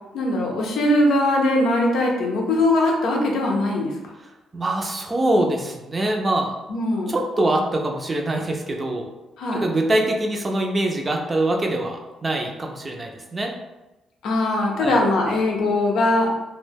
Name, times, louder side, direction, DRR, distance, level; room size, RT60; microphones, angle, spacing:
voice 1, 0.1-3.9 6.7-7.1 9.4-9.6 14.2-16.3, left 1 dB, 80° left, 0 dB, 0.6 m, -21 dB
voice 2, 4.5-6.5 7.1-9.1 9.5-13.5 14.8-15.0, right 1 dB, 25° right, 2 dB, 0.4 m, -24 dB
2.2 x 2.1 x 3.3 m, 1.0 s
cardioid pair, 90°, 0 cm